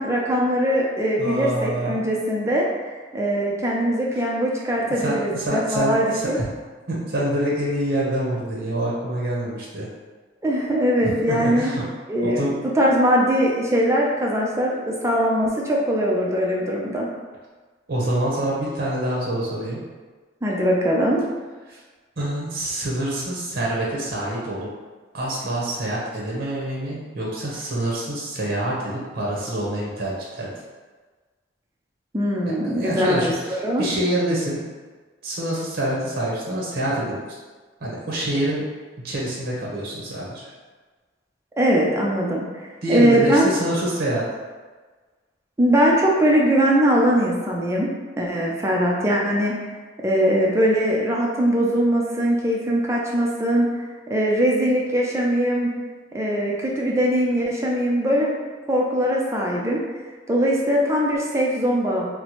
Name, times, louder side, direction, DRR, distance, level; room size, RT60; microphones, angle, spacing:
voice 1, 0.0-6.4 10.4-11.7 12.1-12.4 12.8-17.1 20.4-21.2 32.1-33.9 41.6-43.5 45.6-47.9 48.2-49.5 50.0-53.7 54.1-55.7 56.1-58.4 58.7-59.8 60.3-62.1, equal, 15° right, -3 dB, 0.4 m, -21 dB
voice 2, 1.2-2.0 4.9-6.5 6.9-9.9 11.0-11.8 12.2-12.6 17.9-19.8 21.7-21.8 22.2-24.7 25.1-30.5 32.8-34.6 35.2-37.2 37.8-38.6 39.0-40.4 42.8-44.2, right 1 dB, 55° right, -5 dB, 0.8 m, -26 dB
4.4 x 2.0 x 2.9 m, 1.4 s
head